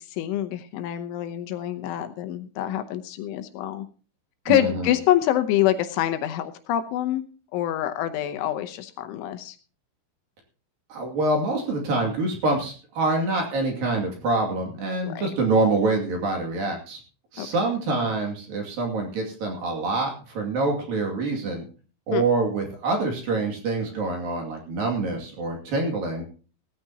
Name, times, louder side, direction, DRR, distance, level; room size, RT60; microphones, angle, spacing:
voice 1, 0.0-3.9 4.5-7.2 7.5-9.6 15.0-15.3 17.4-17.5 22.1-22.2, left 12 dB, 80° left, 9 dB, 3.2 m, -26 dB
voice 2, 4.5-5.0 10.9-17.0 17.3-21.6 22.1-26.3, right 2 dB, 50° right, 1 dB, 3.7 m, -26 dB
17.5 x 13.5 x 2.9 m, 0.38 s
omnidirectional pair, 5.7 m